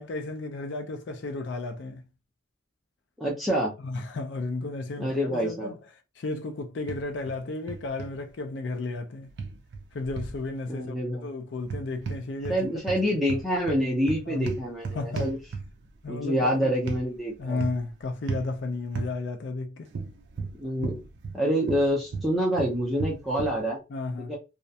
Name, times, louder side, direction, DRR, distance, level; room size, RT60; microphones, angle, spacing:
voice 1, 0.0-2.0 3.8-5.8 6.2-9.3 9.9-12.6 14.3-14.5 14.9-15.3 16.0-16.7 17.4-19.9 23.9-24.3, left 3 dB, 65° left, 0.4 m, -33 dB
voice 2, 3.2-3.7 5.0-5.7 10.7-11.3 12.5-15.4 16.1-17.6 20.6-21.0 21.3-23.8 24.3-24.4, equal, ahead, 0.5 m, -27 dB
sound 1, 6.9-7.4 7.7-8.1 9.4-10.4 11.6-12.6 12.9-15.9 16.9-17.0 17.6-17.9 18.3-18.5 19.0-19.1 19.9-21.4 21.7-23.6, right 4 dB, 60° right, 0.4 m, -34 dB
2.4 x 2.1 x 2.6 m
head